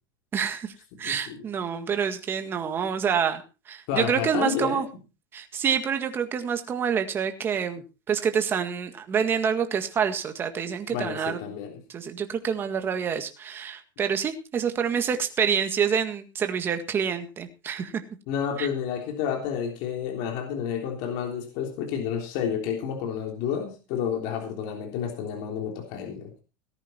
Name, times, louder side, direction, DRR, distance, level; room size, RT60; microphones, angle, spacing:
voice 1, 0.3-0.7 1.0-4.9 5.3-11.4 11.9-18.0 18.6-18.7, right 7 dB, 20° right, 7 dB, 1.8 m, -27 dB
voice 2, 1.0-1.4 3.9-4.8 10.9-11.8 18.3-26.4, left 8 dB, 50° left, 2 dB, 3.4 m, -30 dB
18.0 x 10.0 x 4.4 m, 0.32 s
supercardioid pair, 170°, 11 cm